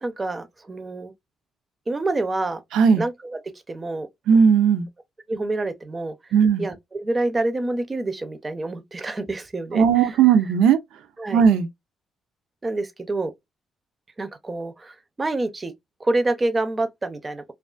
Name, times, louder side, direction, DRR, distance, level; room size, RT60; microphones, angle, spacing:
voice 1, 0.0-1.1 1.9-2.6 3.0-3.4 3.7-4.1 5.3-6.2 6.6-10.2 11.2-11.4 12.6-13.3 14.2-15.7 16.0-17.5, right 2 dB, 25° right, 0.4 m, -27 dB
voice 2, 2.7-3.0 4.3-4.9 6.3-6.7 9.7-10.8 11.3-11.7, right 7 dB, 85° right, 0.4 m, -17 dB
2.4 x 2.3 x 2.3 m
cardioid pair, 90°, 0 cm